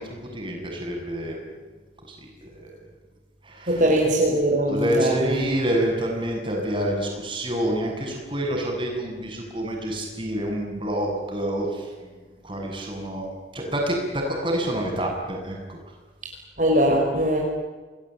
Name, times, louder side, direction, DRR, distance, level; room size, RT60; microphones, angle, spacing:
voice 1, 0.0-1.4 2.1-2.8 3.4-3.9 4.7-11.9 12.4-13.3 13.5-15.8, right 1 dB, 30° right, 1 dB, 7.9 m, -27 dB
voice 2, 3.7-5.4 16.6-17.4, right 1 dB, 45° right, -1 dB, 5.0 m, -21 dB
30.0 x 21.0 x 9.3 m, 1.4 s
head